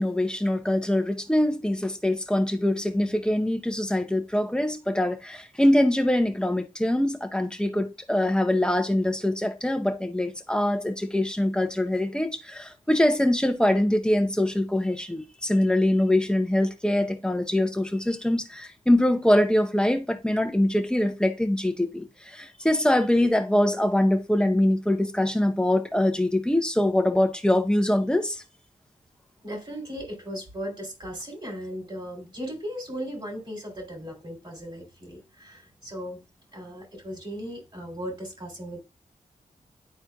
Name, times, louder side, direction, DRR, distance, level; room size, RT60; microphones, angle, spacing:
voice 1, 0.0-28.4, left 1 dB, 5° left, 0.8 m, -23 dB
voice 2, 29.4-36.2 36.5-38.8, equal, 35° right, 3.3 m, -37 dB
10.5 x 4.4 x 2.3 m
cardioid pair, 65°, 15 cm